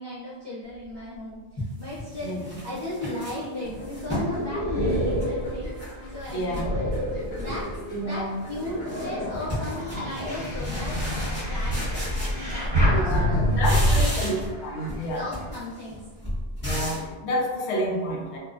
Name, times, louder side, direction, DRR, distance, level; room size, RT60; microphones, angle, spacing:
voice 1, 0.0-5.7 6.1-7.0 7.4-7.7 8.0-11.0 11.3-12.0 12.5-14.3 15.1-16.0, left 1 dB, 40° right, -9 dB, 0.3 m, -36 dB
sound 1, 0.9-1.0 1.6-4.4 4.8-5.9 6.2-7.0 7.4-7.8 8.1-12.8 13.1-14.6 14.9-17.1, left 1 dB, 10° left, 0.8 m, -34 dB
voice 2, 2.2-2.6 6.3-6.6 7.9-8.3 12.9-15.3 16.6-18.4, equal, 80° left, -1 dB, 0.8 m, -29 dB
sound 2, 3.6-15.6, left 1 dB, 55° left, 0.6 m, -46 dB
sound 3, 3.6-7.9 8.4-14.0, equal, 25° right, 1.0 m, -27 dB
2.5 x 2.0 x 2.4 m, 1.4 s
omnidirectional pair, 1.1 m